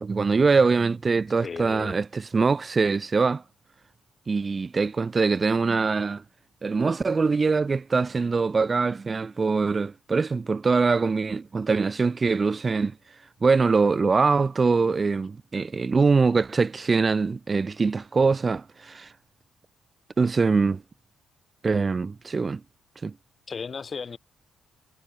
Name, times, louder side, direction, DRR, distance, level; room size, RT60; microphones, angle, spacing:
voice 1, 0.0-3.4 4.3-6.2 6.6-12.9 13.4-19.1 20.2-20.8 21.6-22.6 23.0-23.1, right 4 dB, 30° right, 0.4 m, -23 dB
voice 2, 1.4-2.0 23.5-24.2, left 5 dB, 40° left, 2.3 m, -35 dB
cardioid pair, 90°, 0 cm